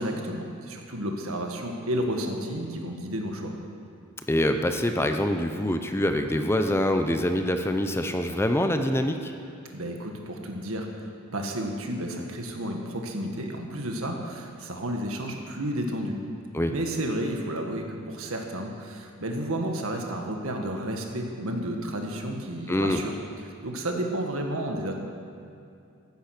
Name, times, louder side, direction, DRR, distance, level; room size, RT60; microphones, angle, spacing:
voice 1, 0.0-3.5 9.7-16.2 16.7-23.1 23.6-25.0, right 1 dB, 70° right, 2 dB, 1.7 m, -31 dB
voice 2, 4.3-9.3 16.5-16.7 22.7-23.0, left 1 dB, 10° left, 6 dB, 0.6 m, -25 dB
15.5 x 10.5 x 6.1 m, 2.5 s
head